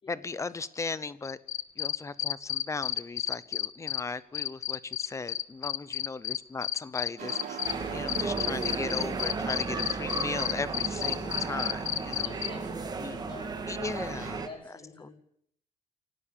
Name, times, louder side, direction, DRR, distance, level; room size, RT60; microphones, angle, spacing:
voice 1, 0.1-1.4 1.8-7.6 7.9-12.3 13.0-13.2 13.7-14.4 15.0-15.1, left 4 dB, 20° left, 16 dB, 0.9 m, -37 dB
sound 1, 1.2-4.0 4.3-7.7 8.1-12.5, left 11 dB, 60° left, 1.0 m, -31 dB
sound 2, 7.2-14.3, right 7 dB, 90° right, 4.5 m, -43 dB
sound 3, 7.6-14.5, right 4 dB, 30° right, 2.1 m, -35 dB
voice 2, 12.2-13.7 14.3-15.1, left 2 dB, 35° left, 0 dB, 5.3 m, -47 dB
26.5 x 12.0 x 9.0 m, 0.69 s
cardioid pair, 150°, 15 cm